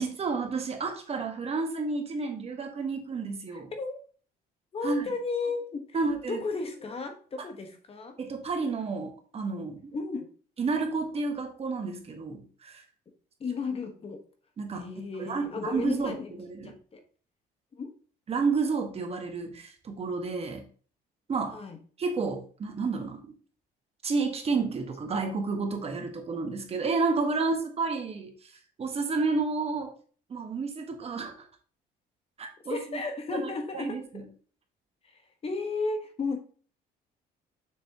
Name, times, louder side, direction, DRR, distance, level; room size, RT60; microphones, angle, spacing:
voice 1, 0.0-3.7 4.8-5.1 5.9-6.4 8.2-9.9 10.6-12.8 14.6-14.9 15.2-16.8 18.3-20.7 21.3-21.6 22.0-23.3 24.0-29.9 30.3-31.5 32.4-33.0 33.3-34.3, right 4 dB, 35° right, 5 dB, 1.5 m, -31 dB
voice 2, 3.5-4.0 4.7-8.2 9.9-10.3 13.4-14.2 14.7-16.4 16.9-17.0 17.8-17.9 21.5-21.8 32.7-34.3 35.1-36.4, left 4 dB, 35° left, 5 dB, 1.4 m, -34 dB
6.9 x 6.3 x 3.0 m, 0.41 s
cardioid pair, 110°, 17 cm